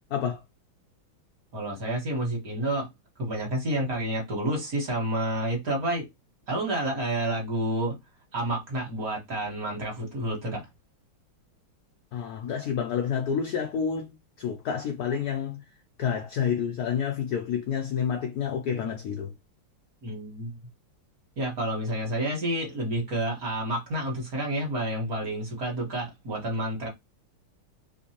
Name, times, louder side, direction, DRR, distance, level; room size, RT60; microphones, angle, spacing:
voice 1, 1.5-2.9 3.2-6.1 6.5-8.0 8.3-10.6 20.0-20.5 21.4-26.9, right 1 dB, 45° right, 1.7 m, -29 dB
voice 2, 12.1-14.1 14.4-15.6 16.0-19.3, left 7 dB, 80° left, 0.8 m, -29 dB
3.5 x 3.1 x 2.9 m
omnidirectional pair, 2.3 m